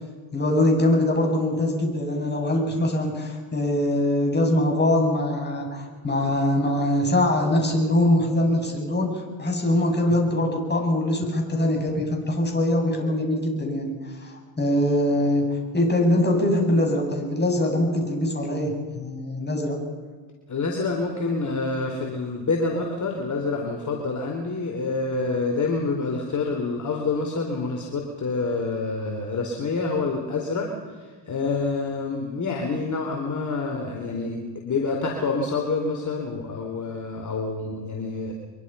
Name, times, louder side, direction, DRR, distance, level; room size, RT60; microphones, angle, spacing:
voice 1, 0.3-19.8, left 1 dB, 20° left, 1 dB, 7.7 m, -23 dB
voice 2, 20.5-30.7 31.3-38.3, left 3 dB, 35° left, 1 dB, 4.2 m, -27 dB
24.5 x 23.5 x 5.8 m, 1.5 s
supercardioid pair, 80°, 49 cm